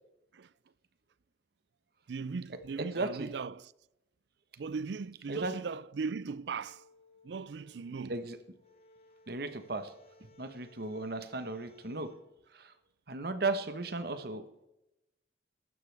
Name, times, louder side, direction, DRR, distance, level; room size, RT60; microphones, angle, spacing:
voice 1, 2.1-3.7 4.6-6.8 7.2-8.2, right 5 dB, 75° right, 0.4 m, -38 dB
voice 2, 2.8-3.3 5.3-5.5 7.9-8.4 9.3-9.9 10.4-12.1 12.5-12.7 13.1-14.4, right 3 dB, 60° right, 1.2 m, -35 dB
sound 1, 6.1-12.2, left 2 dB, 35° left, 1.6 m, -61 dB
15.5 x 12.0 x 3.4 m
head